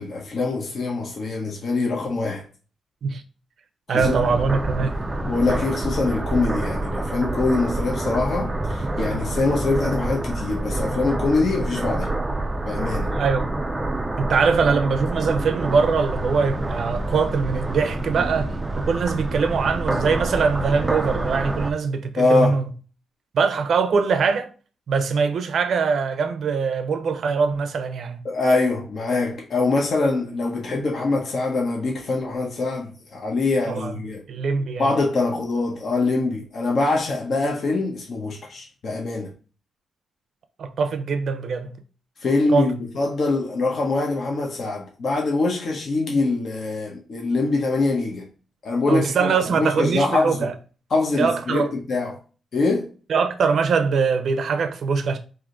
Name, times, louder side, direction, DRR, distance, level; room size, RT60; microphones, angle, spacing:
voice 1, 0.0-2.5 3.9-4.2 5.1-12.1 12.6-13.1 22.2-22.6 28.2-34.2 34.8-39.3 42.2-48.3 48.6-50.5 50.9-52.2 52.5-52.9, left 3 dB, 45° left, 0.9 m, -24 dB
voice 2, 3.9-5.0 13.1-13.5 14.2-22.6 23.3-24.5 24.9-28.2 33.7-33.9 34.3-34.9 40.6-41.8 42.5-42.7 48.9-50.5 51.2-51.7 53.1-55.2, right 5 dB, 55° right, 0.6 m, -22 dB
sound 1, 4.0-21.7, right 2 dB, 15° right, 0.4 m, -27 dB
4.8 x 2.7 x 3.8 m
wide cardioid pair, 155°, 0 cm